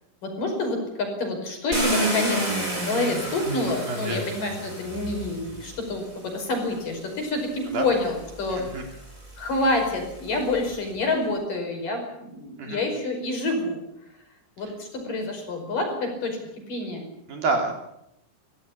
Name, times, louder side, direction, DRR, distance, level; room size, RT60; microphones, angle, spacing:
voice 1, 0.2-9.0 9.4-13.8 14.6-16.4 16.7-17.0, left 2 dB, 40° left, 3 dB, 6.6 m, -28 dB
Car, 1.7-5.8 6.8-6.9 7.4-10.7, right 1 dB, 15° right, 6.3 m, -31 dB
voice 2, 3.9-4.2 7.7-7.9 8.5-8.8 12.6-12.8 17.3-17.7, right 3 dB, 50° right, 4 dB, 4.5 m, -28 dB
24.5 x 16.5 x 8.7 m, 0.79 s
omnidirectional pair, 5.9 m